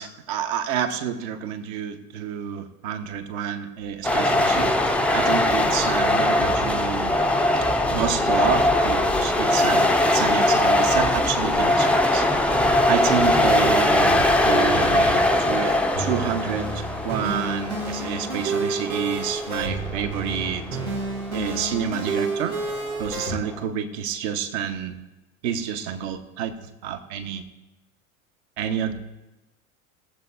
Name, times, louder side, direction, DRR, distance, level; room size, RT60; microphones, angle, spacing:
voice 1, 0.0-7.2 7.9-12.3 12.9-20.6 21.3-22.6 23.0-25.0 25.4-26.5 26.8-27.4 28.6-28.9, right 8 dB, 50° right, 6 dB, 1.4 m, -29 dB
sound 1, 4.0-23.7, left 1 dB, 5° left, 0.8 m, -22 dB
sound 2, 16.0-23.3, right 3 dB, 90° right, 1.7 m, -30 dB
21.0 x 7.6 x 2.8 m, 1.0 s
figure-of-eight pair, 80°, 42 cm